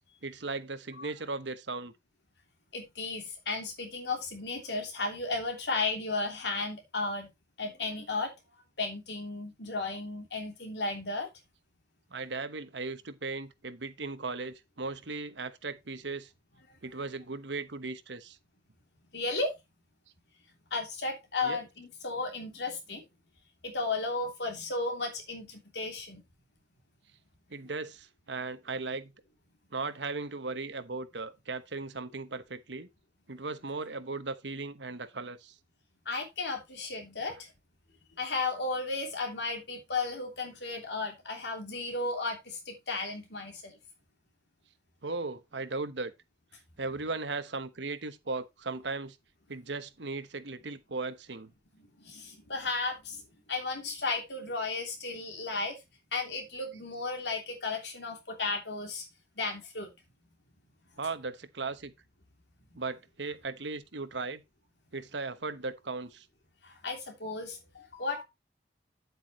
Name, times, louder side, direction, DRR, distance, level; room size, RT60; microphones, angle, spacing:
voice 1, 0.2-1.9 12.1-16.3 16.8-18.4 21.4-21.6 27.5-29.1 29.7-32.9 33.3-35.6 45.0-46.1 46.8-49.2 49.5-51.5 61.0-61.9 62.7-64.4 64.9-66.3, right 3 dB, 80° right, 1.1 m, -37 dB
voice 2, 2.7-7.3 7.6-8.3 8.8-11.3 19.1-19.5 20.7-23.0 23.6-26.2 36.0-37.5 38.2-43.8 52.0-53.2 53.5-55.7 56.1-59.0 59.4-59.9 66.6-68.2, left 3 dB, 70° left, 3.2 m, -34 dB
9.7 x 8.1 x 3.1 m
head